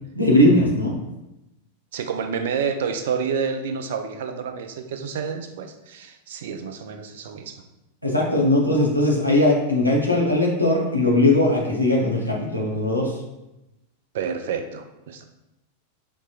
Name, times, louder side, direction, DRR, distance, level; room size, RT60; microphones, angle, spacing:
voice 1, 0.1-1.0 8.0-13.1, left 1 dB, 90° left, -3 dB, 0.8 m, -19 dB
voice 2, 1.9-7.6 14.1-15.2, right 6 dB, 55° right, 6 dB, 0.4 m, -29 dB
4.5 x 2.8 x 2.4 m, 0.93 s
figure-of-eight pair, 90°, 0 cm